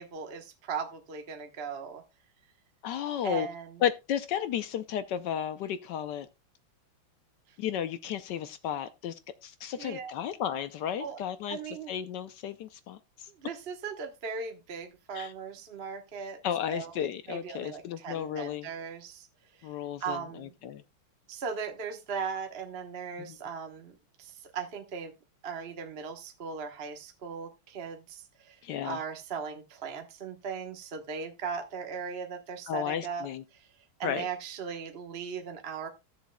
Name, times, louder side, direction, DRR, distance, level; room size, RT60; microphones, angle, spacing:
voice 1, 0.0-2.0 3.2-3.8 9.8-10.1 11.0-11.2 11.5-11.9 13.4-16.4 16.7-19.3 19.6-19.7 20.0-20.5 21.3-25.1 25.4-33.7 34.0-35.9, right 6 dB, 40° right, 1.0 m, -38 dB
voice 2, 2.8-3.5 3.8-6.3 7.6-9.1 9.4-11.6 11.9-13.0 15.1-15.3 16.4-18.7 19.6-20.8 23.2-23.4 28.6-29.0 32.7-33.4 34.0-34.3, left 9 dB, 70° left, 1.1 m, -33 dB
15.5 x 7.2 x 2.2 m
omnidirectional pair, 2.3 m